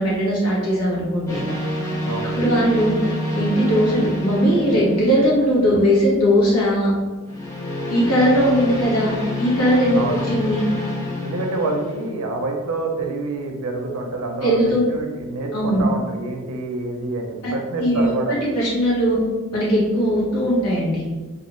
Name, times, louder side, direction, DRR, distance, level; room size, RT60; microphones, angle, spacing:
voice 1, 0.0-1.4 2.2-3.0 3.3-6.9 7.9-10.7 14.4-14.8 15.5-15.8 17.4-17.5 17.8-19.2 19.5-21.1, equal, 85° left, -6 dB, 1.0 m, -19 dB
sound 1, 1.3-5.7 7.3-12.1, left 1 dB, 15° left, 0.3 m, -28 dB
voice 2, 11.2-18.4, right 2 dB, 80° right, 3 dB, 0.5 m, -27 dB
2.4 x 2.4 x 3.0 m, 1.3 s
head